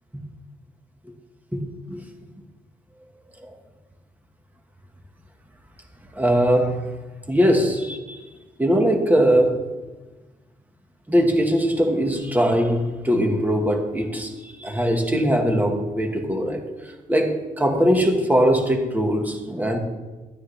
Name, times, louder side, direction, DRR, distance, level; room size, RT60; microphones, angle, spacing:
voice 1, 6.1-6.8 7.3-8.2 8.6-9.7 11.1-16.6 17.1-19.8, equal, 10° right, 2 dB, 1.5 m, -21 dB
12.5 x 12.0 x 3.3 m, 1.2 s
cardioid pair, 125°, 15 cm